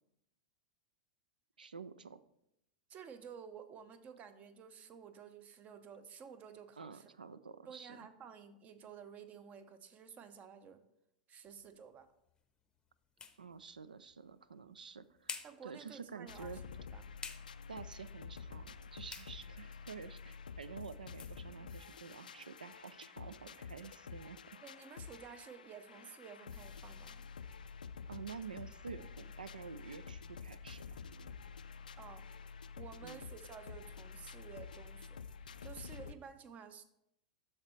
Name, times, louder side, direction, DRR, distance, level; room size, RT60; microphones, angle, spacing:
voice 1, 1.6-2.2 6.8-8.1 13.4-16.6 17.7-24.4 28.1-31.0 33.0-33.2, right 6 dB, 85° right, 16 dB, 0.4 m, -49 dB
voice 2, 2.9-7.1 7.7-10.8 11.3-12.1 15.4-16.6 16.9-17.0 24.6-27.2 32.0-36.8, right 7 dB, 30° right, 12 dB, 0.7 m, -53 dB
sound 1, 11.5-23.0, left 6 dB, 15° left, 0.7 m, -55 dB
sound 2, 16.3-36.1, left 6 dB, 80° left, 0.3 m, -49 dB
12.5 x 4.3 x 3.1 m, 0.81 s
figure-of-eight pair, 95°, 4 cm